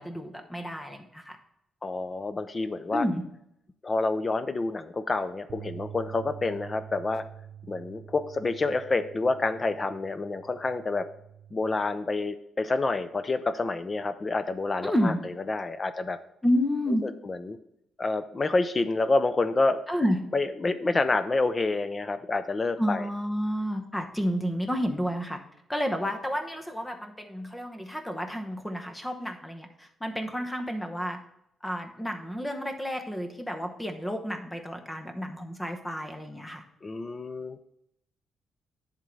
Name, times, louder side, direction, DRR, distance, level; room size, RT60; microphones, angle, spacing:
voice 1, 0.0-1.4 2.9-3.2 14.8-15.2 16.4-17.0 19.9-20.2 22.8-25.4 25.7-31.2 31.6-36.6, equal, 5° left, 5 dB, 0.9 m, -30 dB
voice 2, 1.8-3.0 3.8-7.2 7.7-11.1 11.5-16.2 17.0-17.6 18.0-19.8 20.3-23.1 36.8-37.6, left 3 dB, 25° left, 11 dB, 0.5 m, -28 dB
sound 1, 5.5-11.8, right 9 dB, 60° right, 0.7 m, -46 dB
10.5 x 3.7 x 5.4 m, 0.77 s
cardioid pair, 150°, 0 cm